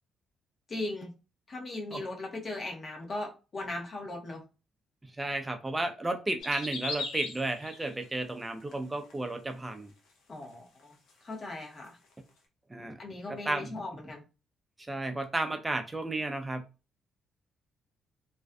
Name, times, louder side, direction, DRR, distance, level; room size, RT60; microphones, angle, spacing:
voice 1, 0.7-1.1 1.5-4.4 10.3-12.0 13.0-14.2, left 2 dB, 45° left, 0 dB, 0.8 m, -38 dB
voice 2, 5.2-9.9 12.7-12.9 13.3-13.7 14.9-16.6, right 2 dB, 15° right, 6 dB, 0.5 m, -33 dB
sound 1, 6.4-8.1 8.6-9.1 9.5-9.6 10.4-10.5 10.8-10.9 11.9-12.0, left 3 dB, 80° left, 0.7 m, -38 dB
2.5 x 2.3 x 2.2 m, 0.31 s
cardioid pair, 90°, 0 cm